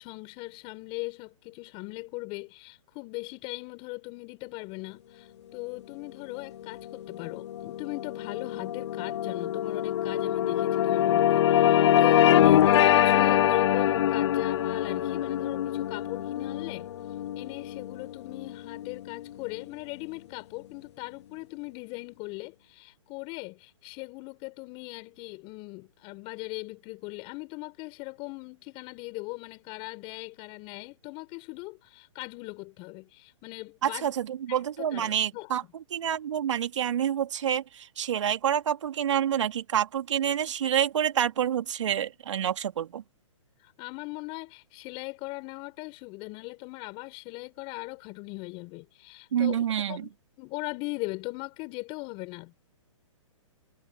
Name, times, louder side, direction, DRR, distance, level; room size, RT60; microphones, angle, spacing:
voice 1, 0.0-16.9 17.3-34.1 34.5-35.5 43.6-49.6 49.9-50.1 50.4-52.6, left 26 dB, 30° left, 4.6 m, -39 dB
sound 1, 6.6-19.2, left 11 dB, 60° left, 0.4 m, -24 dB
voice 2, 33.8-43.0 49.3-50.1, right 9 dB, 65° right, 2.9 m, -28 dB
hypercardioid pair, 135°, 17 cm